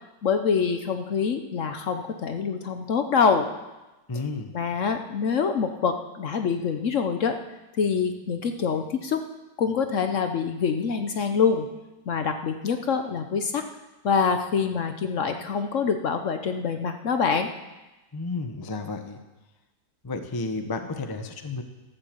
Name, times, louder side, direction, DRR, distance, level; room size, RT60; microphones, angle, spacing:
voice 1, 0.2-3.5 4.5-7.4 7.8-9.2 9.6-11.7 12.1-13.6 14.0-17.5, left 6 dB, 55° left, 7 dB, 1.0 m, -25 dB
voice 2, 4.1-4.5 18.1-19.2 20.0-21.6, left 3 dB, 20° left, 7 dB, 0.6 m, -32 dB
13.0 x 8.0 x 7.4 m, 1.1 s
omnidirectional pair, 1.8 m